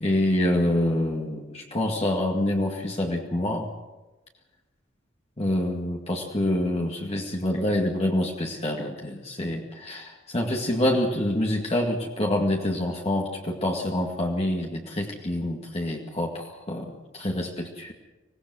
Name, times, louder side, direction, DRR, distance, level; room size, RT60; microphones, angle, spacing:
voice 1, 0.0-3.7 5.4-17.9, left 1 dB, 35° left, -1 dB, 2.1 m, -26 dB
25.5 x 18.0 x 6.3 m, 1.1 s
head